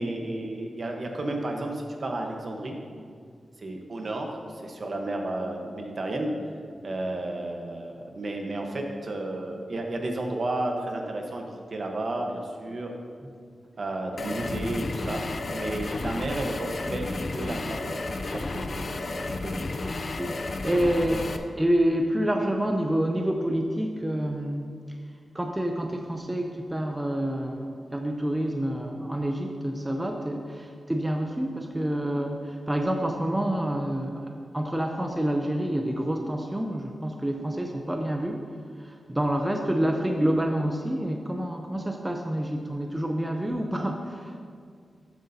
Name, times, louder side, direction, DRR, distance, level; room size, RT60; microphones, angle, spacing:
voice 1, 0.0-2.8 3.6-6.3 6.8-12.9 13.8-15.3 15.5-18.0 18.3-19.6, right 2 dB, 50° right, 2 dB, 1.1 m, -32 dB
sound 1, 14.2-21.4, left 2 dB, 55° left, 0.6 m, -32 dB
voice 2, 20.2-21.3 21.6-25.0 25.3-38.4 38.8-44.3, right 1 dB, 10° right, 2 dB, 0.6 m, -28 dB
12.5 x 7.7 x 2.8 m, 2.1 s
wide cardioid pair, 90°, 0 cm